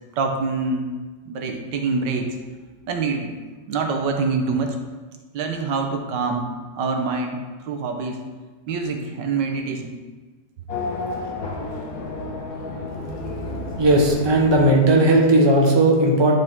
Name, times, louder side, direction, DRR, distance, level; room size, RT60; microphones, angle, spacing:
voice 1, 0.2-0.9 1.3-2.4 2.9-3.4 3.7-4.8 5.3-6.5 6.8-8.2 8.7-10.0, right 4 dB, 85° right, 4 dB, 1.5 m, -25 dB
Race car auto racing / Accelerating revving vroom, 10.7-15.4, left 3 dB, 60° left, 1.6 m, -31 dB
voice 2, 13.8-16.3, right 1 dB, 20° right, -1 dB, 1.0 m, -16 dB
10.5 x 5.3 x 3.6 m, 1.3 s
omnidirectional pair, 1.9 m